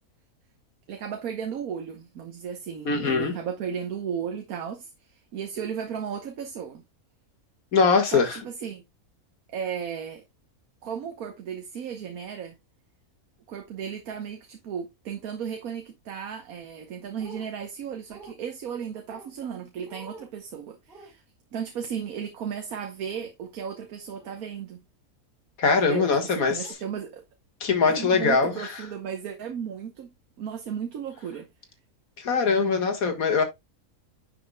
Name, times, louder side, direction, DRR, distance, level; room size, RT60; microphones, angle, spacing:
voice 1, 0.9-6.8 8.1-8.8 9.5-10.2 10.8-12.6 13.5-21.2 21.5-24.8 25.8-27.2 27.9-30.1 30.4-31.5, right 7 dB, 75° right, 1.4 m, -35 dB
voice 2, 2.9-3.3 7.7-8.4 25.6-26.8 27.6-28.8 32.2-33.4, left 5 dB, 70° left, 2.0 m, -22 dB
sound 1, 17.2-17.5 18.1-18.4 19.1-19.3 19.9-20.3 20.9-21.1 23.1-23.3 24.1-24.4 25.7-25.8 26.6-26.7, right 2 dB, 40° right, 3.5 m, -47 dB
10.5 x 5.7 x 2.2 m
omnidirectional pair, 1.5 m